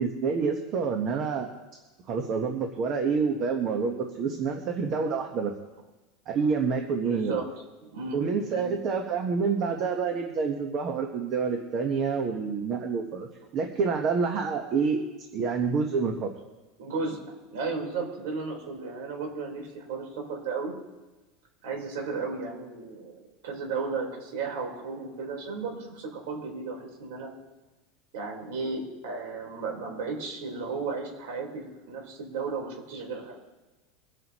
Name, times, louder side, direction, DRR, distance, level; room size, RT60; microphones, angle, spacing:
voice 1, 0.0-1.5 2.1-5.5 6.3-7.3 8.1-13.3 13.5-15.0 15.3-16.3, right 5 dB, 35° right, 3 dB, 1.4 m, -27 dB
voice 2, 7.0-7.4 7.9-8.2 8.5-8.7 16.8-17.2 17.5-20.7 21.6-27.3 28.1-33.4, right 4 dB, 70° right, 0 dB, 4.3 m, -34 dB
24.0 x 9.7 x 3.1 m, 1.1 s
supercardioid pair, 160°, 0 cm